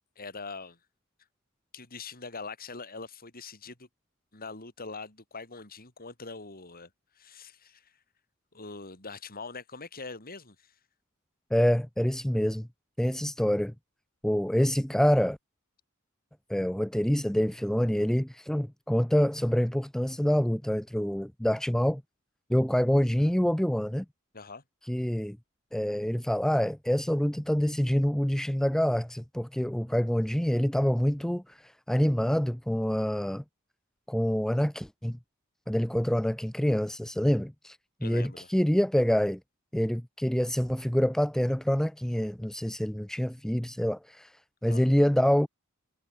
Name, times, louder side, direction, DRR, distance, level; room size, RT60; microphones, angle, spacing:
voice 1, 0.2-0.8 1.7-3.9 4.3-6.9 7.1-7.9 8.5-10.7 24.3-24.6 38.0-38.5 44.7-44.9, left 4 dB, 45° left, 6.0 m, -43 dB
voice 2, 11.5-12.7 13.0-13.7 14.2-15.4 16.5-22.0 22.5-24.1 24.9-25.4 25.7-33.4 34.1-35.2 35.7-39.4 39.7-44.3 44.6-45.5, equal, ahead, 0.4 m, -26 dB
head